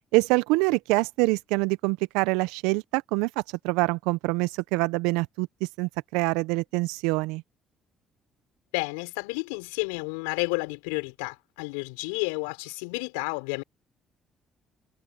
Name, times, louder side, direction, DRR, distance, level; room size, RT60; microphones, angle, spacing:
voice 1, 0.1-3.3 3.6-5.5 5.8-7.4, right 24 dB, 75° right, 1.1 m, -25 dB
voice 2, 8.7-13.6, left 33 dB, 80° left, 5.6 m, -31 dB
hypercardioid pair, 50°, 0 cm